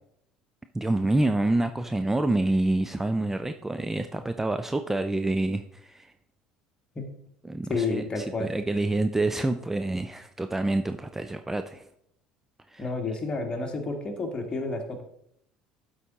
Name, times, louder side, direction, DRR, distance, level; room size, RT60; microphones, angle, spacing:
voice 1, 0.7-6.1 7.4-11.8 12.7-12.9, right 2 dB, 10° right, 8 dB, 0.4 m, -27 dB
voice 2, 7.7-8.5 12.8-15.0, left 3 dB, 30° left, 4 dB, 1.6 m, -30 dB
12.5 x 4.1 x 3.7 m, 0.73 s
hypercardioid pair, 65°, 3 cm